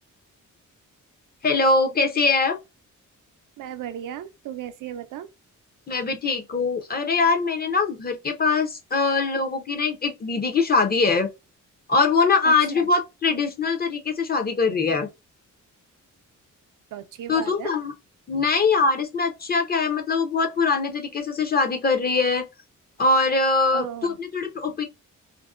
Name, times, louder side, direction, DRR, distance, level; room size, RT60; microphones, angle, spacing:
voice 1, 1.4-2.6 5.9-11.3 11.9-15.1 17.3-17.9 18.3-22.4 23.0-24.8, left 4 dB, 30° left, 0.6 m, -22 dB
voice 2, 3.6-5.3 12.4-12.9 14.9-15.0 16.9-17.7 23.7-24.2, right 10 dB, 80° right, 0.5 m, -36 dB
2.6 x 2.0 x 2.3 m
cardioid pair, 110°, 31 cm